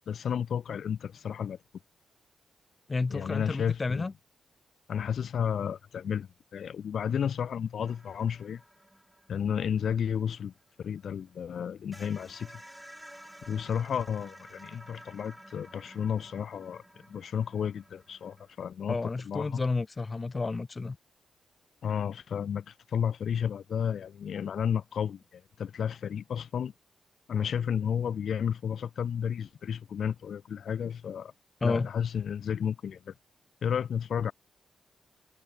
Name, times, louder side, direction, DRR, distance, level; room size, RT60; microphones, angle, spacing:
voice 1, 0.1-1.6 3.1-4.1 4.9-8.6 9.3-10.5 10.8-12.6 13.5-16.8 17.1-19.0 19.2-19.6 21.8-26.7 27.3-31.3 31.6-33.1 33.6-34.3, left 8 dB, 70° left, 0.8 m, -32 dB
voice 2, 2.9-4.1 18.9-21.0 31.6-31.9, left 3 dB, 30° left, 1.3 m, -31 dB
sound 1, 7.8-11.2 11.5-11.6 11.9-18.6, equal, 5° right, 3.1 m, -52 dB
cardioid pair, 110°, 0 cm